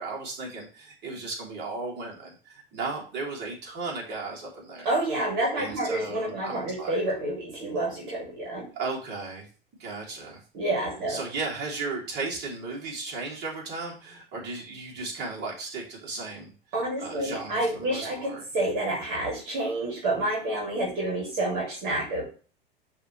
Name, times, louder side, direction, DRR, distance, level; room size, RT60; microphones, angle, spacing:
voice 1, 0.0-4.9 5.5-7.0 8.7-9.4 9.8-10.4 11.1-16.5 17.0-18.4, right 3 dB, 35° right, -3 dB, 3.0 m, -35 dB
voice 2, 4.8-8.7 10.5-11.2 16.7-22.2, right 1 dB, 50° right, -2 dB, 2.6 m, -29 dB
11.0 x 3.6 x 3.3 m, 0.39 s
figure-of-eight pair, 85°, 30 cm